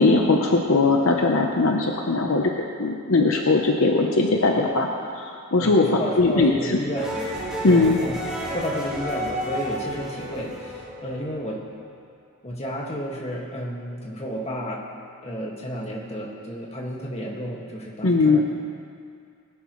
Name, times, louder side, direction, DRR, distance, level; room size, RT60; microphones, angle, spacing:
voice 1, 0.0-2.4 2.8-4.9 5.2-6.5 7.6-8.0 18.0-18.4, left 3 dB, 65° left, 1 dB, 0.9 m, -19 dB
voice 2, 5.6-7.1 7.7-11.6 12.4-14.8 15.2-18.4, equal, 30° left, -3 dB, 1.9 m, -32 dB
sound 1, 6.9-11.7, equal, 5° right, 2.6 m, -31 dB
21.0 x 11.0 x 3.2 m, 2.2 s
head